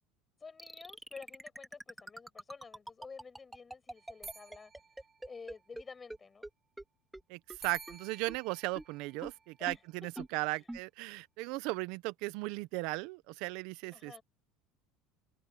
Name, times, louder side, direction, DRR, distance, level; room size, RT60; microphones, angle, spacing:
voice 1, 0.4-4.7 5.2-6.5 9.6-10.2 10.5-10.7 13.9-14.2, left 5 dB, 20° left, 6.6 m, -51 dB
sound 1, 0.6-5.8 6.1-6.2 6.4-6.5 6.8-6.9 7.1-7.2 7.5-7.6 7.9-8.0 8.3-8.4 8.8-8.9 9.2-9.3 9.7-9.8 10.2-10.3 10.7-10.8, right 1 dB, 5° right, 2.4 m, -44 dB
sound 2, 4.0-5.9 7.6-10.0, right 5 dB, 25° right, 1.7 m, -53 dB
voice 2, 7.3-14.2, right 22 dB, 70° right, 0.9 m, -37 dB
open air
supercardioid pair, 120°, 0 cm